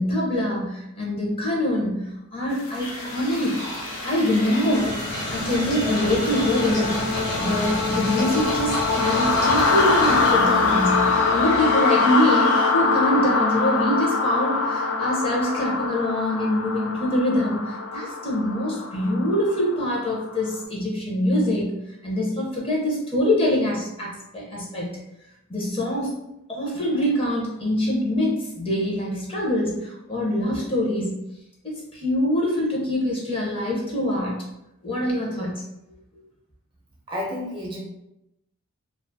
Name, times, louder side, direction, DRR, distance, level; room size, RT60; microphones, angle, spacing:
voice 1, 0.0-3.6 4.0-5.0 5.3-21.7 22.0-24.9 25.5-26.1 26.5-31.1 31.6-34.4 34.8-35.5, left 1 dB, 25° left, -4 dB, 0.6 m, -24 dB
sound 1, 2.6-20.4, left 4 dB, 65° left, 0.3 m, -24 dB
sound 2, 2.8-12.7, equal, 40° left, 1.1 m, -35 dB
sound 3, 4.7-10.3, left 1 dB, 90° left, 1.0 m, -30 dB
voice 2, 37.1-37.8, left 1 dB, 20° right, -3 dB, 0.4 m, -30 dB
2.4 x 2.3 x 2.6 m, 0.87 s
head